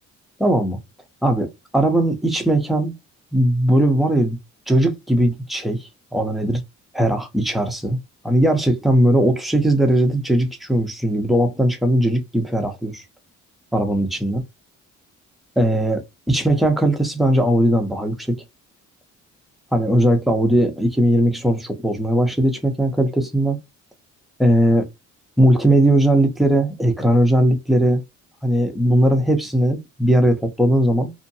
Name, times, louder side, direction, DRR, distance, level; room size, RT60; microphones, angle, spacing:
voice 1, 0.4-0.8 1.2-2.9 3.3-4.4 4.7-6.6 6.9-8.0 8.2-13.0 13.7-14.4 15.6-18.4 19.7-23.6 24.4-24.9 25.4-28.0 28.4-31.1, right 1 dB, ahead, 0.7 m, -19 dB
2.7 x 2.1 x 2.6 m
cardioid pair, 90°, 30 cm